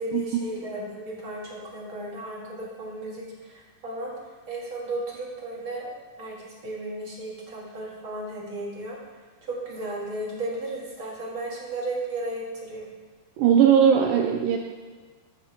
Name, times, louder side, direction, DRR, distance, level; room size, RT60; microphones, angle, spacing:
voice 1, 0.0-9.0 9.4-12.9, right 1 dB, 45° right, -4 dB, 2.0 m, -34 dB
voice 2, 13.4-14.6, right 8 dB, 90° right, 2 dB, 2.0 m, -19 dB
13.5 x 9.4 x 2.9 m, 1.4 s
omnidirectional pair, 4.6 m